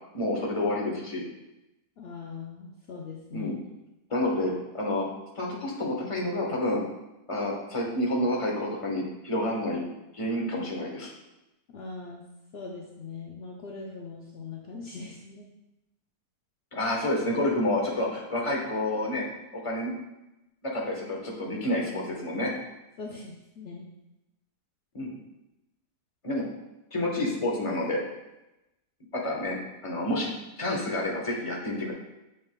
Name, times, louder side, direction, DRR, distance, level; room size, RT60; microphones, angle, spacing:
voice 1, 0.1-1.2 3.3-3.6 4.1-5.0 5.3-6.8 7.3-9.8 10.1-11.1 16.7-19.3 19.5-19.9 20.6-22.5 24.9-25.2 26.2-26.4 26.9-28.0 29.1-29.6 29.8-30.3 30.6-31.9, left 1 dB, 25° left, -2 dB, 1.0 m, -29 dB
voice 2, 2.0-3.5 11.7-12.2 12.5-15.5 23.0-23.9, left 4 dB, 65° left, 0 dB, 0.6 m, -41 dB
7.0 x 6.4 x 2.2 m, 0.95 s
omnidirectional pair, 1.7 m